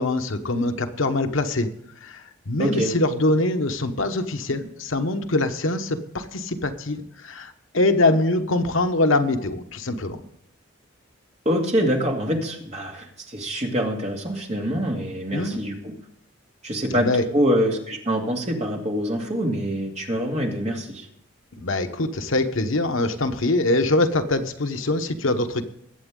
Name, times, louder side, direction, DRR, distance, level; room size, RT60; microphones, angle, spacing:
voice 1, 0.0-1.7 2.0-10.2 15.3-15.6 16.9-17.2 21.6-25.6, left 2 dB, 80° left, 7 dB, 1.1 m, -23 dB
voice 2, 2.6-2.9 11.4-15.9 16.6-17.1 17.3-21.1, equal, 35° right, 0 dB, 2.5 m, -25 dB
21.5 x 8.1 x 3.8 m, 0.75 s
head